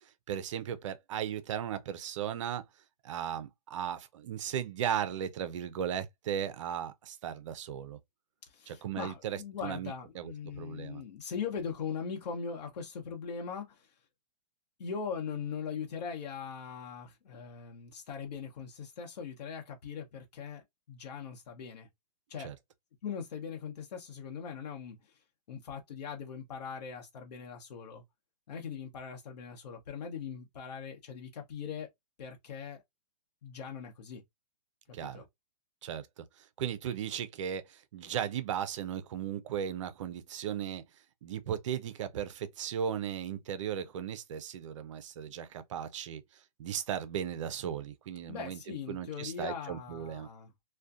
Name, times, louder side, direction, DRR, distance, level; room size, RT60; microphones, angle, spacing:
voice 1, 0.0-2.6 3.0-8.0 8.7-11.0 22.4-22.6 34.9-35.2 35.8-40.8 41.2-50.3, right 9 dB, 50° right, 0.4 m, -36 dB
voice 2, 8.5-13.9 14.8-21.9 22.3-22.5 23.0-25.0 25.5-28.0 28.5-31.9 32.2-32.8 33.4-34.2 34.9-35.2 48.3-50.5, left 6 dB, 75° left, 0.8 m, -40 dB
2.5 x 2.2 x 2.3 m
hypercardioid pair, 155°, 21 cm